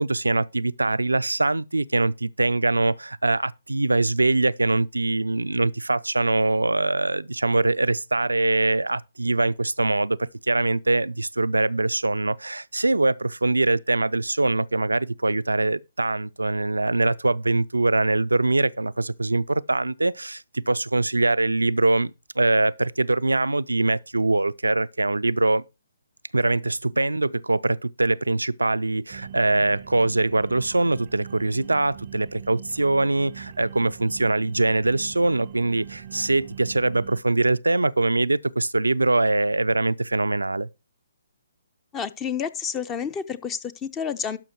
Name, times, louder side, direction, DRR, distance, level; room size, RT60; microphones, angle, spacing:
voice 1, 0.0-25.6 26.3-40.7, right 2 dB, 90° right, 0.5 m, -23 dB
sound 1, 29.1-37.2, right 10 dB, 40° right, 0.6 m, -41 dB
voice 2, 41.9-44.4, left 7 dB, 20° left, 0.7 m, -30 dB
12.0 x 5.7 x 4.5 m
figure-of-eight pair, 135°, 0 cm